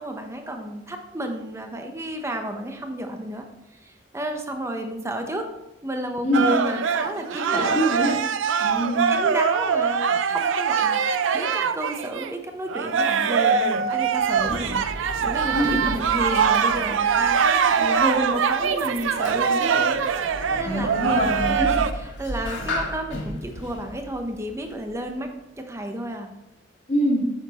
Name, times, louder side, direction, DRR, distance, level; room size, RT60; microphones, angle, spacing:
voice 1, 0.0-3.4 3.8-5.5 5.8-8.0 8.6-8.7 9.1-20.0 20.5-20.9 21.4-25.3 25.6-26.3, right 1 dB, 15° right, 4 dB, 0.9 m, -31 dB
sound 1, 6.3-12.3 12.7-21.9, right 6 dB, 85° right, 0.5 m, -23 dB
voice 2, 7.5-8.1 8.6-9.1 15.5-15.8 20.6-21.6 26.9-27.2, equal, 35° left, -2 dB, 1.8 m, -24 dB
Sliding door, 13.9-25.2, left 1 dB, 75° left, 1.8 m, -36 dB
8.9 x 7.0 x 3.0 m, 0.91 s
head